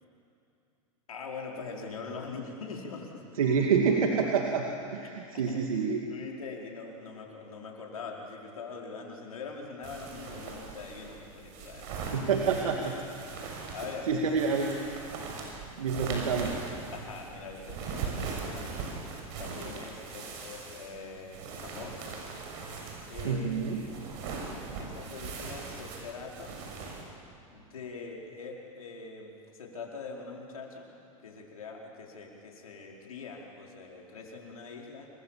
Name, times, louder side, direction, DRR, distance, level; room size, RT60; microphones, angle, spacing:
voice 1, 1.1-3.2 5.0-5.1 5.4-11.9 13.7-14.1 16.9-18.7 19.4-22.1 23.1-24.1 24.8-26.6 27.5-30.9 31.2-35.1, left 4 dB, 90° left, 0 dB, 4.7 m, -43 dB
voice 2, 3.4-4.7 4.9-6.0 12.1-13.0 13.6-13.7 14.1-14.8 15.8-16.6 23.2-23.8, right 5 dB, 80° right, 2 dB, 2.3 m, -27 dB
sound 1, 9.8-27.0, right 4 dB, 60° right, 6.8 m, -40 dB
28.0 x 23.0 x 7.4 m, 2.6 s
hypercardioid pair, 105°, 18 cm